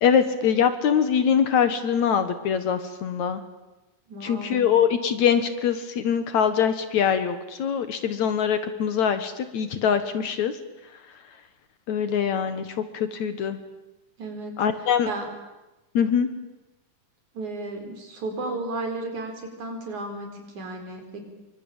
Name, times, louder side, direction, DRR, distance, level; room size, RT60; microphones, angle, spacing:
voice 1, 0.0-3.4 4.2-10.5 11.9-13.6 14.6-15.1 15.9-16.3, left 8 dB, 60° left, 11 dB, 2.5 m, -23 dB
voice 2, 4.1-4.7 14.2-15.3 17.3-21.2, right 2 dB, 60° right, 5 dB, 5.9 m, -34 dB
26.5 x 24.0 x 9.0 m, 1.0 s
omnidirectional pair, 3.9 m